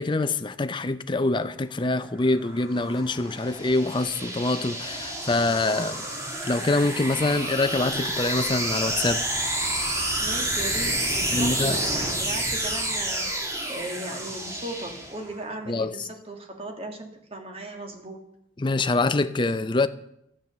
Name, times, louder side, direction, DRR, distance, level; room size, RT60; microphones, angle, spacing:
voice 1, 0.0-6.1 6.5-9.2 11.3-11.8 15.7-15.9 18.6-19.9, left 2 dB, 25° left, 0.5 m, -25 dB
sound 1, 2.0-15.4, right 1 dB, 15° right, 1.9 m, -29 dB
voice 2, 10.2-18.2, right 1 dB, 30° right, 1.8 m, -37 dB
12.0 x 9.0 x 6.8 m
head